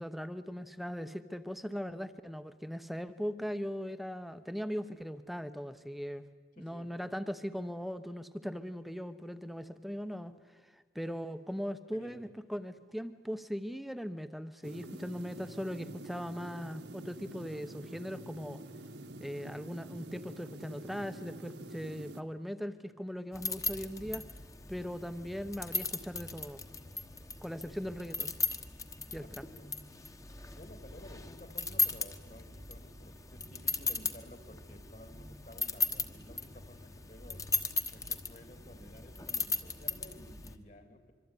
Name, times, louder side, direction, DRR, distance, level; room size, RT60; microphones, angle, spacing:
voice 1, 0.0-6.3 6.6-10.3 10.6-18.6 19.2-24.2 24.7-26.6 27.4-28.3 29.1-29.4, equal, ahead, 11 dB, 0.8 m, -39 dB
voice 2, 6.6-6.9 11.9-12.2 29.1-29.7 30.6-37.4 37.9-41.1, left 1 dB, 45° left, 8 dB, 2.7 m, -54 dB
sound 1, 14.6-22.2, right 1 dB, 75° right, 1.7 m, -47 dB
sound 2, 23.3-40.5, left 4 dB, 20° left, 1.3 m, -37 dB
25.5 x 24.0 x 9.8 m, 1.5 s
head